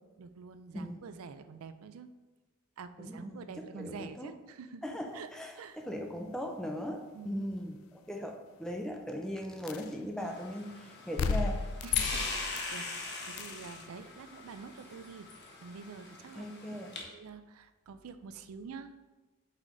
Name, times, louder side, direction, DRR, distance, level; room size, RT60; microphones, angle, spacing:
voice 1, 0.2-2.1 2.8-4.8 5.1-6.1 7.1-7.4 11.8-16.6 16.9-18.9, right 5 dB, 80° right, 11 dB, 0.4 m, -47 dB
voice 2, 0.7-1.1 3.0-3.4 3.7-4.3 4.8-5.5 5.9-11.6 16.4-16.9, equal, 5° left, 2 dB, 0.4 m, -39 dB
sound 1, 9.7-9.9 11.2-12.8 13.4-13.6, left 5 dB, 75° left, 0.3 m, -33 dB
sound 2, 10.2-17.0, left 3 dB, 50° left, 1.0 m, -41 dB
5.7 x 4.8 x 3.9 m, 1.2 s
head